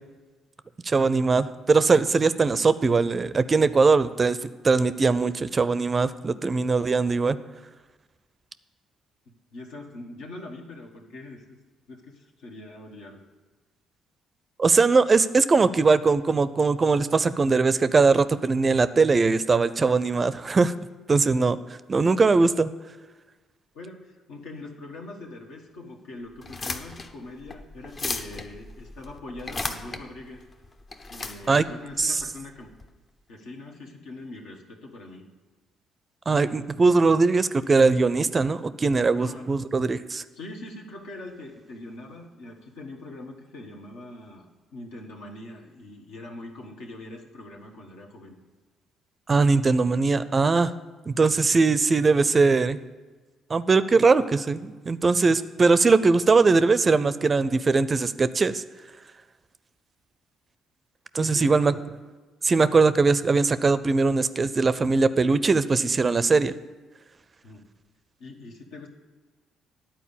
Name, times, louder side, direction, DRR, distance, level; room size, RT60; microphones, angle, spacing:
voice 1, 0.8-4.4 4.6-7.4 14.6-20.7 21.1-21.6 21.9-22.7 31.5-31.7 32.0-32.2 36.3-40.2 49.3-50.7 51.1-52.8 53.5-58.6 61.1-61.7 62.4-66.5, right 4 dB, 35° right, 15 dB, 0.4 m, -21 dB
voice 2, 9.5-11.5 11.9-13.2 23.7-30.4 31.1-32.7 33.3-35.2 39.2-39.5 40.3-44.5 44.7-48.4 61.1-61.8 67.4-67.7 68.2-68.9, left 2 dB, 80° left, 0 dB, 1.3 m, -42 dB
sound 1, 26.3-32.8, left 3 dB, 40° left, 0.7 m, -36 dB
10.0 x 4.4 x 7.0 m, 1.3 s
supercardioid pair, 60°, 0 cm